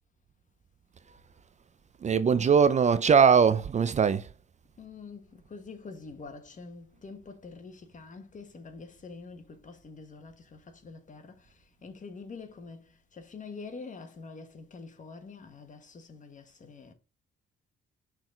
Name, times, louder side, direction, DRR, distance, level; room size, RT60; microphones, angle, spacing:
voice 1, 2.0-4.3, right 6 dB, 35° right, 0.5 m, -21 dB
voice 2, 4.8-16.9, left 4 dB, 40° left, 1.5 m, -46 dB
6.2 x 4.0 x 3.9 m
cardioid pair, 90°, 20 cm